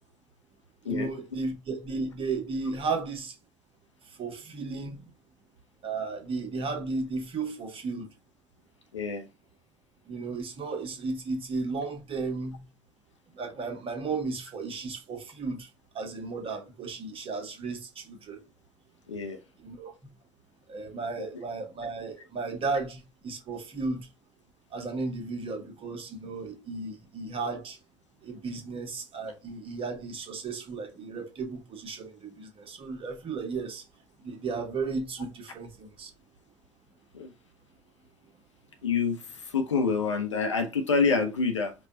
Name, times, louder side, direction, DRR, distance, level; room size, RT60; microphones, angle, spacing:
voice 1, 0.9-3.3 4.2-5.1 5.8-8.1 10.1-12.6 13.4-15.7 15.9-18.4 19.6-19.9 20.7-24.1 24.7-27.8 28.2-33.8 34.2-36.1, right 4 dB, 35° right, 1.3 m, -34 dB
voice 2, 8.9-9.3 19.1-19.4 37.1-37.3 38.8-41.7, left 5 dB, 80° left, 0.6 m, -27 dB
4.7 x 2.4 x 3.8 m
figure-of-eight pair, 60°, 15 cm